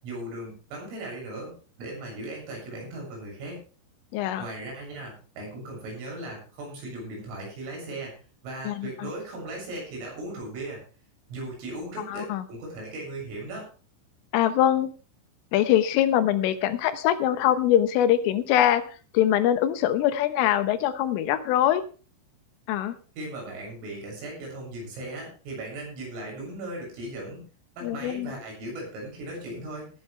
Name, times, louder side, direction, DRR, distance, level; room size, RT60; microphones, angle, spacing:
voice 1, 0.0-3.6 4.4-8.1 8.4-10.8 11.3-13.6 23.2-27.4 27.8-29.9, right 1 dB, 85° right, -1 dB, 10.0 m, -37 dB
voice 2, 4.1-4.5 8.7-9.1 12.1-12.4 14.3-14.9 15.5-21.8 22.7-23.0 27.8-28.4, left 11 dB, 85° left, 11 dB, 3.7 m, -23 dB
18.5 x 11.0 x 3.4 m, 0.36 s
omnidirectional pair, 5.7 m